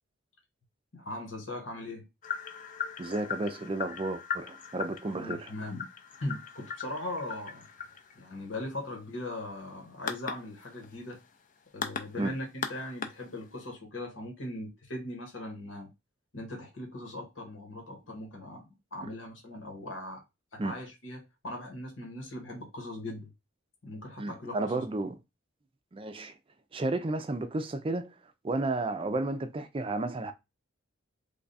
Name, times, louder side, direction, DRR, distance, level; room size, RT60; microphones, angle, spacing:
voice 1, 0.9-2.1 5.1-5.9 6.2-7.7 8.1-11.2 11.7-15.9 16.3-20.2 20.5-23.3 23.8-24.8, left 1 dB, 75° left, 1.2 m, -39 dB
sound 1, 2.2-13.7, left 7 dB, 40° left, 0.5 m, -40 dB
voice 2, 3.0-5.5 12.2-12.3 20.6-20.7 24.2-25.2 25.9-26.3 26.7-28.1 28.4-30.3, right 2 dB, 25° right, 0.4 m, -32 dB
3.3 x 2.3 x 4.0 m
head